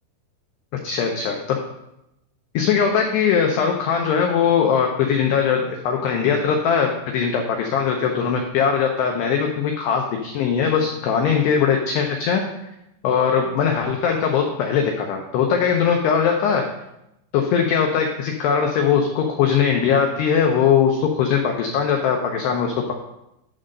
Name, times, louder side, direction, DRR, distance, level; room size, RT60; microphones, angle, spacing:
voice 1, 0.8-1.6 2.5-12.4 13.0-16.6 17.3-22.9, left 7 dB, 85° left, 2 dB, 2.3 m, -20 dB
9.7 x 3.8 x 6.5 m, 0.86 s
omnidirectional pair, 5.7 m